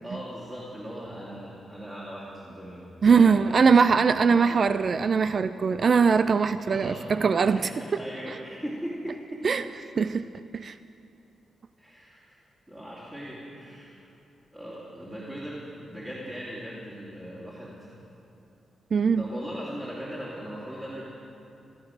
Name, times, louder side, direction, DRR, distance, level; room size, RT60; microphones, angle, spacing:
voice 1, 0.0-4.6 6.7-7.0 7.4-9.4 11.8-12.2 12.7-14.1 14.5-18.0 19.1-21.0, equal, 15° right, -7 dB, 2.6 m, -39 dB
voice 2, 3.0-7.6 8.3-8.4 9.4-9.6 10.0-10.3 10.5-10.8 18.9-19.2, right 5 dB, 45° right, 12 dB, 0.3 m, -21 dB
16.5 x 13.0 x 6.5 m, 2.7 s
wide cardioid pair, 140°, 0 cm